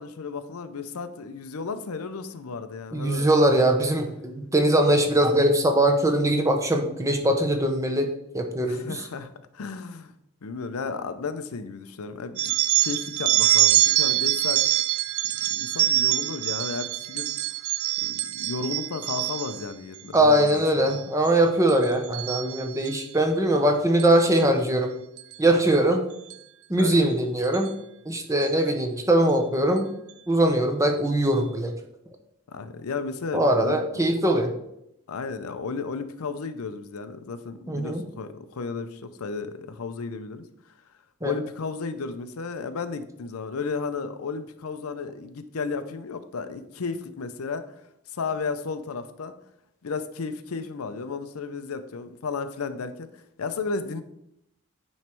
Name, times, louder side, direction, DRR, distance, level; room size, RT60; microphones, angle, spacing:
voice 1, 0.0-3.3 8.6-10.1 10.4-12.4 12.8-14.6 15.5-17.3 18.0-21.0 26.8-27.0 32.5-33.8 35.1-40.4 41.2-47.6 48.1-49.3 49.8-54.0, left 4 dB, 80° left, 11 dB, 0.6 m, -33 dB
voice 2, 2.9-8.1 8.3-9.0 20.1-24.9 25.4-26.0 26.7-27.7 28.1-29.9 30.3-31.7 33.3-34.5 37.7-38.0 41.2-41.3, right 1 dB, 15° right, 4 dB, 0.7 m, -21 dB
sound 1, 12.4-19.7 20.2-20.5 20.9-21.3 21.7-23.0 24.0-24.2 25.2-25.3 26.3-26.4 26.8-26.9 27.4-27.7, right 14 dB, 80° right, 0.4 m, -25 dB
9.2 x 3.2 x 4.4 m, 0.80 s
head